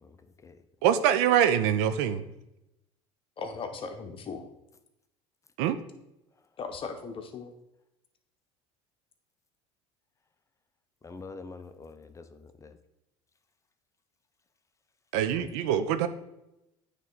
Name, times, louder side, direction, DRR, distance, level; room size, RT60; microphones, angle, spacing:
voice 1, 0.8-2.2 5.6-5.8 15.1-16.1, right 9 dB, 70° right, 11 dB, 0.5 m, -24 dB
voice 2, 3.4-4.4 6.6-7.5, left 4 dB, 35° left, 6 dB, 1.0 m, -37 dB
voice 3, 11.0-12.8 15.4-15.5, left 3 dB, 20° left, 9 dB, 0.6 m, -45 dB
9.0 x 3.2 x 4.0 m, 0.89 s
hypercardioid pair, 85°, 15 cm